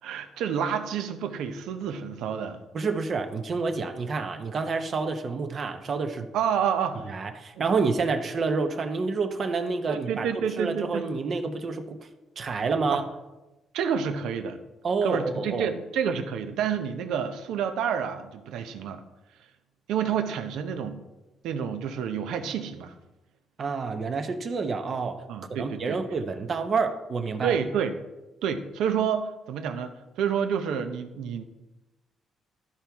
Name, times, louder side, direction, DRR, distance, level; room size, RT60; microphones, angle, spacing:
voice 1, 0.0-2.6 6.3-7.2 7.6-7.7 9.9-11.1 12.9-13.0 13.7-14.6 15.0-19.0 19.9-21.0 21.4-22.9 25.3-26.0 27.4-28.0 28.4-31.4, right 7 dB, 85° right, 8 dB, 0.7 m, -29 dB
voice 2, 2.7-6.3 7.1-10.3 10.6-12.0 12.4-13.0 14.8-15.7 23.6-25.2 25.5-27.6, right 4 dB, 50° right, 6 dB, 0.8 m, -28 dB
13.0 x 4.5 x 3.5 m, 1.0 s
cardioid pair, 90°, 0 cm